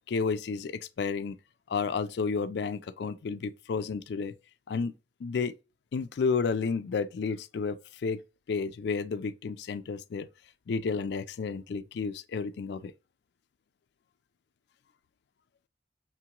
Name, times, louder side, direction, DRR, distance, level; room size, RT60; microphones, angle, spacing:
voice 1, 0.1-1.4 1.7-4.3 4.7-4.9 5.2-5.5 5.9-7.8 8.0-8.2 8.5-10.3 10.7-12.9, left 5 dB, 70° left, 0.4 m, -31 dB
5.9 x 2.9 x 2.3 m
head